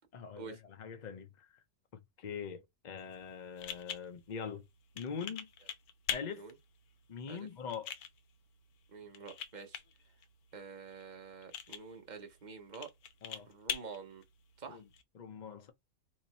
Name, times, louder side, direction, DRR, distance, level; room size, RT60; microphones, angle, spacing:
voice 1, 0.1-1.5 1.9-4.6 4.9-5.5 6.1-6.4 7.1-7.9 13.2-13.5 14.7-14.9 15.1-15.7, left 6 dB, 40° left, 0.6 m, -43 dB
sound 1, 3.0-15.0, left 8 dB, 85° left, 1.1 m, -45 dB
voice 2, 8.9-9.8 10.5-12.9 13.5-14.2 14.6-14.8, right 5 dB, 40° right, 0.8 m, -48 dB
3.0 x 2.8 x 4.1 m
omnidirectional pair, 1.6 m